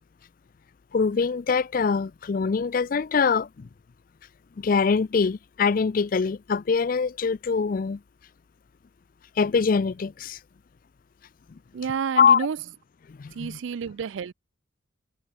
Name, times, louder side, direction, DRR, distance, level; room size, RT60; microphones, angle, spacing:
voice 1, 0.9-3.7 4.6-8.0 9.3-10.4 12.2-12.5 13.1-13.6, left 5 dB, 45° left, 0.4 m, -23 dB
voice 2, 11.7-12.6 13.3-14.3, right 6 dB, 70° right, 0.4 m, -30 dB
head